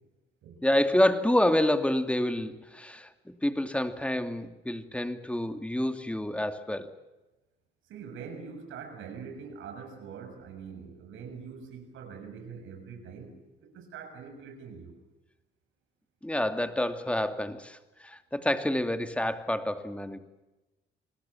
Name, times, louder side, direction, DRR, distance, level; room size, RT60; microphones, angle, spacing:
voice 1, 0.6-6.9 16.2-20.2, left 1 dB, 5° left, 8 dB, 2.5 m, -28 dB
voice 2, 7.9-14.9, right 6 dB, 80° right, 5 dB, 7.0 m, -44 dB
29.0 x 20.5 x 7.3 m, 1.1 s
cardioid pair, 90°, 20 cm